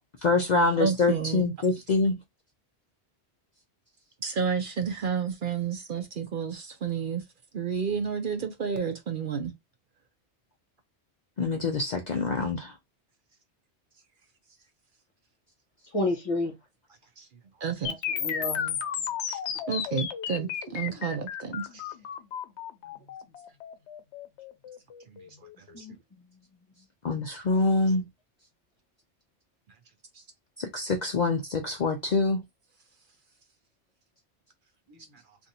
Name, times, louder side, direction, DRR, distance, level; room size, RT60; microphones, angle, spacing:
voice 1, 0.2-2.2 11.4-12.7 27.0-28.1 30.6-32.4, left 3 dB, 55° left, 0.5 m, -25 dB
voice 2, 0.8-1.5 4.2-7.3 7.5-9.5 17.2-17.3 17.6-18.0 19.3-19.4 19.7-21.9 25.1-25.2 25.6-25.9 30.1-30.2, right 6 dB, 55° right, 0.7 m, -31 dB
voice 3, 15.9-16.5 17.8-19.1 25.3-25.4 25.7-26.3 34.9-35.0, left 2 dB, 35° left, 0.9 m, -32 dB
sound 1, 17.8-25.8, left 8 dB, 85° left, 0.9 m, -34 dB
2.6 x 2.5 x 4.1 m
omnidirectional pair, 1.1 m